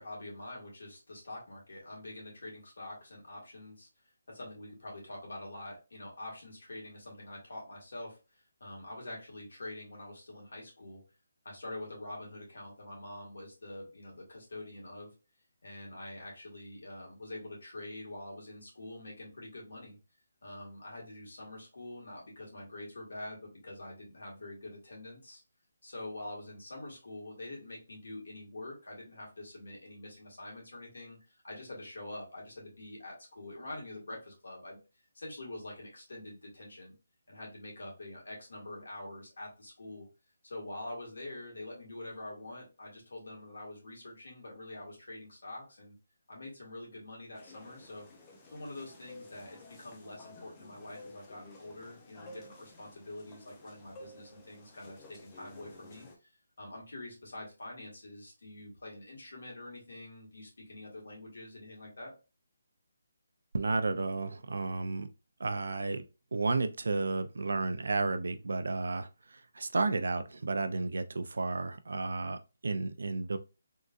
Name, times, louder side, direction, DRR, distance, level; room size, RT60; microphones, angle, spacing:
voice 1, 0.0-3.9 4.3-11.0 11.4-15.1 15.6-20.0 20.4-25.4 25.8-34.8 35.1-36.9 37.3-40.1 40.4-46.0 46.3-48.1 48.5-56.1 56.6-62.1, left 1 dB, 80° left, 1.9 m, -45 dB
sound 1, 47.3-56.2, left 2 dB, 15° left, 0.4 m, -53 dB
voice 2, 63.5-65.1 65.4-66.0 66.3-73.4, right 3 dB, 75° right, 0.4 m, -32 dB
3.7 x 2.5 x 2.4 m
hypercardioid pair, 175°, 0 cm